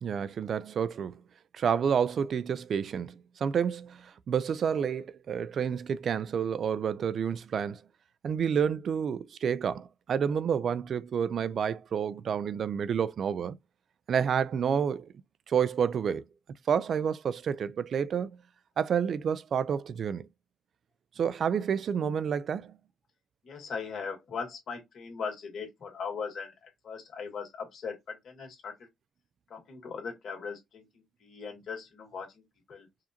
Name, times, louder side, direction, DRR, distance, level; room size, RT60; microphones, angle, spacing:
voice 1, 0.0-1.2 1.5-7.8 8.2-13.6 14.1-15.1 15.5-16.2 16.7-18.4 18.8-20.3 21.2-22.8, right 7 dB, 55° right, 0.3 m, -29 dB
voice 2, 23.4-28.7 29.5-30.8 31.2-32.4 32.7-32.9, left 5 dB, 60° left, 1.9 m, -39 dB
4.9 x 2.6 x 2.8 m
cardioid pair, 90°, 0 cm